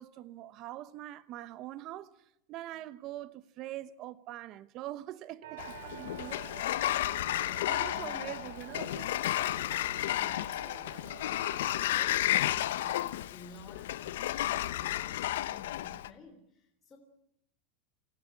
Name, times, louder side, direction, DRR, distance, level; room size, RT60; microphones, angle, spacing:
voice 1, 0.0-2.1 2.5-6.4 7.0-7.1 7.7-9.1, right 14 dB, 45° right, 1.1 m, -43 dB
sound 1, 5.4-12.1, right 8 dB, 80° right, 2.7 m, -49 dB
Sliding door, 5.6-16.1, left 14 dB, 80° left, 0.9 m, -32 dB
voice 2, 7.9-8.5 9.8-17.0, left 3 dB, 20° left, 3.6 m, -53 dB
28.0 x 15.5 x 8.4 m
supercardioid pair, 135°, 0 cm